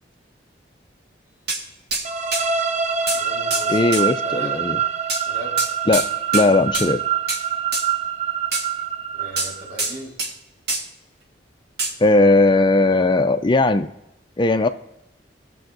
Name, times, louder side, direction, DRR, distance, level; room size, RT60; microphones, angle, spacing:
sound 1, 1.5-1.6 1.9-2.1 2.3-2.5 3.1-3.2 3.5-3.7 3.9-4.0 5.1-5.2 5.6-6.1 6.3-6.5 6.7-6.9 7.3-7.4 7.7-7.9 8.5-8.7 9.4-10.3 10.7-10.8 11.8-11.9, right 2 dB, 60° right, 1.6 m, -25 dB
sound 2, 2.0-9.8, right 7 dB, 40° right, 0.5 m, -25 dB
voice 1, 3.1-4.7 5.2-5.6 9.1-10.1, equal, 80° right, -4 dB, 4.0 m, -37 dB
voice 2, 3.7-4.8 5.9-6.0 6.3-7.0 12.0-13.9 14.4-14.7, left 2 dB, 25° left, 9 dB, 0.4 m, -17 dB
19.5 x 6.9 x 2.6 m, 0.90 s
head